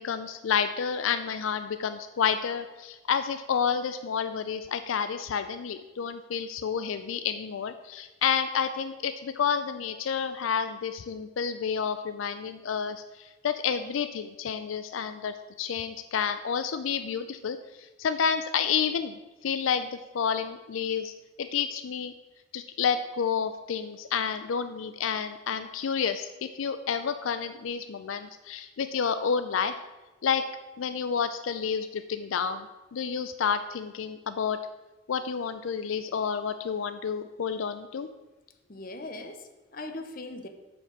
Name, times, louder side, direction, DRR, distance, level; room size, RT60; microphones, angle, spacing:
voice 1, 0.0-22.1 22.5-29.7 30.2-30.4 30.8-34.6 35.1-38.1, left 7 dB, 80° left, 10 dB, 0.4 m, -30 dB
voice 2, 38.7-40.5, left 2 dB, 45° left, 7 dB, 0.8 m, -40 dB
8.5 x 5.2 x 6.0 m, 1.1 s
head